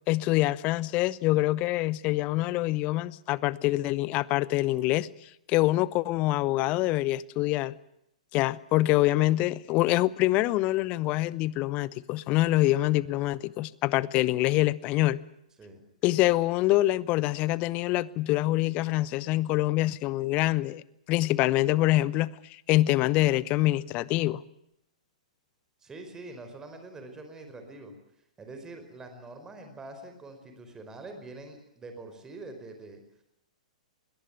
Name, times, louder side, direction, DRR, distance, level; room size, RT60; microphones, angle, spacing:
voice 1, 0.1-5.1 5.5-7.8 8.3-15.2 16.0-20.8 21.1-24.4, left 17 dB, 35° left, 0.8 m, -25 dB
voice 2, 25.8-27.9 28.4-33.0, right 2 dB, 15° right, 4.7 m, -44 dB
21.5 x 18.5 x 9.6 m
figure-of-eight pair, 110°, 4 cm